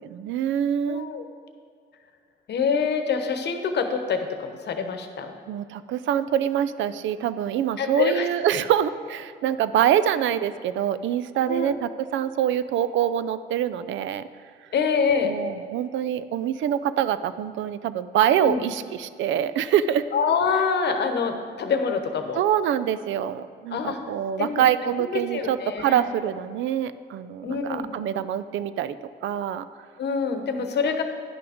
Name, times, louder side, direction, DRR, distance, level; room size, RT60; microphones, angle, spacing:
voice 1, 0.1-1.1 5.5-14.3 15.2-20.1 22.3-29.0 29.2-29.6, right 10 dB, 70° right, 14 dB, 0.4 m, -25 dB
voice 2, 0.9-1.2 2.5-5.4 7.8-8.3 11.5-11.7 14.7-15.3 18.4-18.6 20.1-22.4 23.7-24.0 24.4-26.1 27.4-27.9 30.0-31.0, left 5 dB, 60° left, 6 dB, 1.0 m, -26 dB
10.5 x 5.9 x 5.0 m, 2.2 s
cardioid pair, 90°, 20 cm